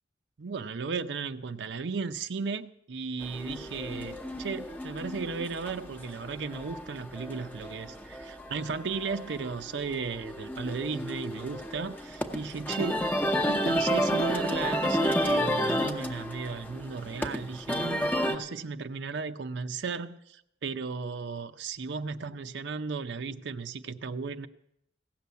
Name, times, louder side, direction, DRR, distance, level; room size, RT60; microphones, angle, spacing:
voice 1, 0.4-13.0 13.5-24.5, right 4 dB, 75° right, 8 dB, 0.5 m, -35 dB
sound 1, 3.2-18.4, equal, 10° left, 0.8 m, -31 dB
16.0 x 6.9 x 9.3 m, 0.80 s
head